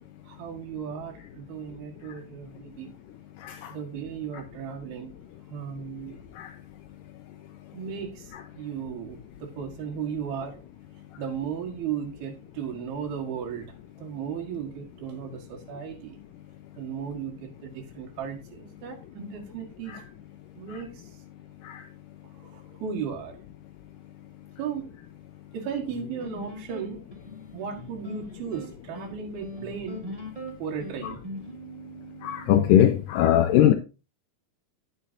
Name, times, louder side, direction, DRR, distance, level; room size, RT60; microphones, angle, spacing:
voice 1, 0.3-2.9 3.7-5.1 5.5-6.3 7.7-10.6 11.2-16.2 16.8-20.0 20.6-21.1 22.2-23.4 24.6-24.9 25.5-27.0 27.5-30.1 30.6-31.2, right 7 dB, 90° right, 3.6 m, -36 dB
sound 1, 25.9-32.9, equal, 40° right, 0.5 m, -41 dB
voice 2, 32.2-33.7, left 11 dB, 80° left, 2.0 m, -20 dB
10.0 x 9.4 x 2.7 m
omnidirectional pair, 4.3 m